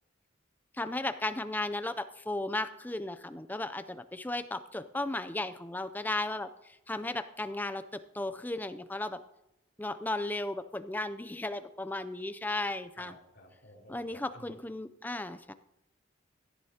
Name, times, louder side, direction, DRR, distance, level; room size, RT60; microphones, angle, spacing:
voice 1, 0.7-9.2 9.8-13.2 13.9-15.5, left 2 dB, 10° left, 11 dB, 0.4 m, -35 dB
voice 2, 13.0-14.5, left 1 dB, 60° left, -1 dB, 3.7 m, -54 dB
17.0 x 11.0 x 2.8 m, 0.87 s
head